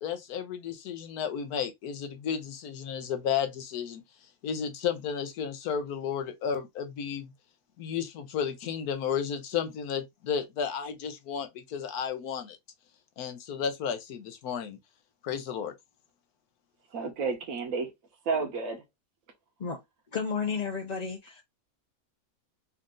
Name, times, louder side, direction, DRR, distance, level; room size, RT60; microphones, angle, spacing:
voice 1, 0.0-4.0 4.4-7.3 7.8-12.6 13.2-14.8 15.2-15.7, left 7 dB, 85° left, 1.3 m, -33 dB
voice 2, 16.9-17.9 18.2-18.8, right 4 dB, 65° right, 1.3 m, -31 dB
voice 3, 20.1-21.4, left 5 dB, 45° left, 0.5 m, -32 dB
4.2 x 2.5 x 3.7 m
omnidirectional pair, 1.6 m